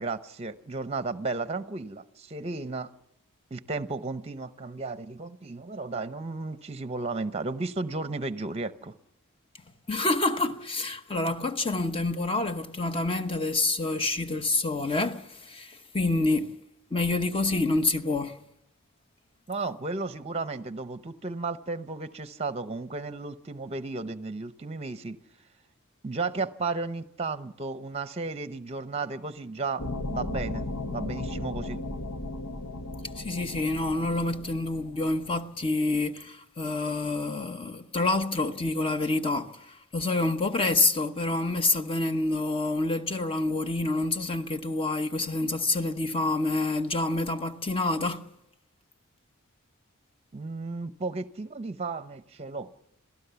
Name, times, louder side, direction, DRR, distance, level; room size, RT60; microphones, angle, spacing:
voice 1, 0.0-2.9 3.5-8.9 19.5-25.2 26.0-31.8 50.3-52.7, right 3 dB, 30° right, 0.8 m, -34 dB
voice 2, 9.9-16.6 16.9-18.4 33.2-39.6 39.9-48.3, left 2 dB, 25° left, 1.0 m, -27 dB
sound 1, 29.8-35.4, left 2 dB, 85° left, 1.0 m, -36 dB
27.5 x 17.0 x 6.9 m
head